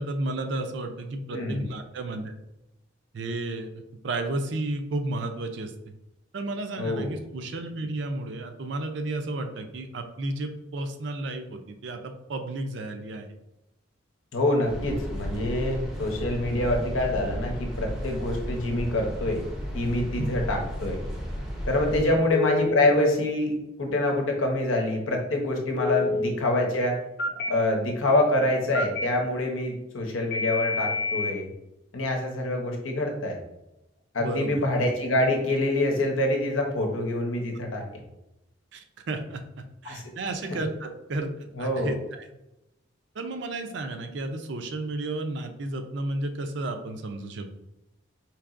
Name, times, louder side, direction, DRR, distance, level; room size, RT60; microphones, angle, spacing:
voice 1, 0.0-2.3 3.1-3.7 4.0-5.7 6.3-13.3 20.2-20.3 22.0-22.2 34.2-34.6 38.7-42.3 43.2-47.5, right 2 dB, 60° right, 6 dB, 0.4 m, -32 dB
voice 2, 1.3-1.7 6.8-7.1 14.3-19.4 19.7-21.0 21.7-27.0 27.5-31.5 31.9-33.3 34.1-38.0 39.8-40.0 41.5-42.0, left 1 dB, 90° left, 2 dB, 0.8 m, -26 dB
sound 1, 14.7-22.0, equal, 5° right, 0.5 m, -33 dB
Telephone, 22.3-22.8 25.8-26.3 27.2-27.5 28.7-29.0 30.3-31.3, left 3 dB, 50° left, 0.4 m, -27 dB
4.6 x 2.9 x 2.4 m, 0.92 s
head